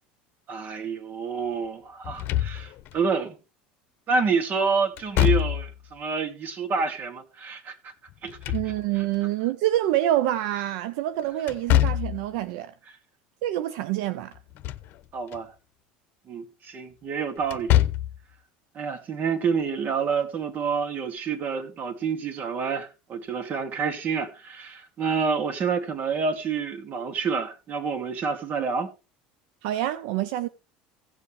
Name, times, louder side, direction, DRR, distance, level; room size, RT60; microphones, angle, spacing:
voice 1, 0.5-3.4 4.1-7.9 8.2-8.4 15.1-15.5 16.3-17.7 18.7-28.9, right 5 dB, 40° right, 2.6 m, -28 dB
Slam / Thump thud, 2.0-3.0 5.0-5.9 8.1-9.2 11.5-12.3 14.3-14.9 15.3-15.4 17.4-18.2, left 13 dB, 55° left, 0.9 m, -24 dB
voice 2, 8.5-12.7 13.4-14.3 29.6-30.5, right 13 dB, 75° right, 0.7 m, -26 dB
16.5 x 7.0 x 3.3 m
supercardioid pair, 100°, 4 cm